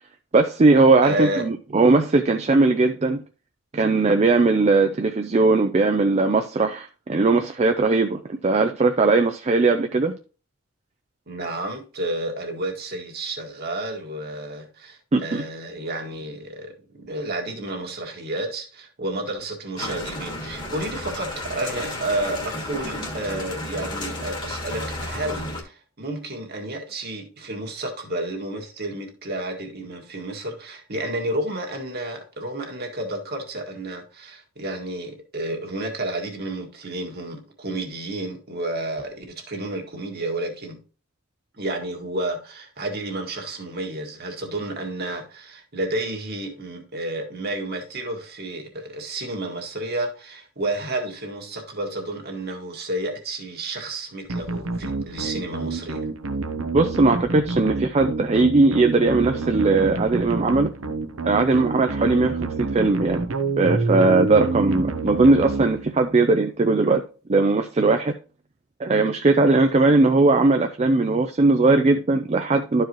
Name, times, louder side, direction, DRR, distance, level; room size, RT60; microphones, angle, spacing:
voice 1, 0.3-3.2 3.7-10.1 15.1-15.4 56.7-60.7 61.2-63.2 63.6-67.0 67.3-68.1 68.8-72.8, right 3 dB, 30° right, 0.5 m, -19 dB
voice 2, 1.0-1.5 11.3-40.8 41.5-56.1, right 1 dB, 50° right, 1.8 m, -31 dB
sound 1, 19.8-25.6, left 1 dB, 20° left, 1.4 m, -32 dB
sound 2, 54.3-66.2, right 3 dB, 75° right, 1.0 m, -28 dB
12.0 x 4.7 x 3.0 m
head